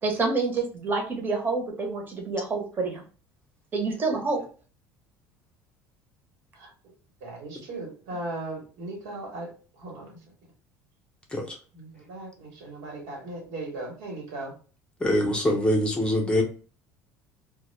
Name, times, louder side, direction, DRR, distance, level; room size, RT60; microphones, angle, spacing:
voice 1, 0.0-3.0 3.7-4.4, right 3 dB, 30° right, 0.8 m, -27 dB
voice 2, 7.2-9.5 9.8-10.2 11.7-14.5, right 2 dB, 80° right, 1.0 m, -37 dB
voice 3, 15.0-16.4, left 1 dB, 15° left, 0.6 m, -24 dB
2.1 x 2.0 x 3.1 m
supercardioid pair, 110°, 7 cm